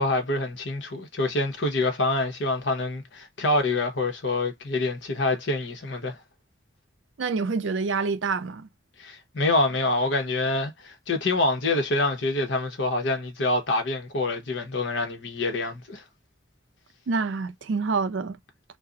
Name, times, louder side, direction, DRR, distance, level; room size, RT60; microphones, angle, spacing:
voice 1, 0.0-6.2 9.0-16.0, left 2 dB, 70° left, 0.8 m, -26 dB
voice 2, 7.2-8.7 17.1-18.4, right 4 dB, 75° right, 0.5 m, -27 dB
2.4 x 2.0 x 3.6 m
head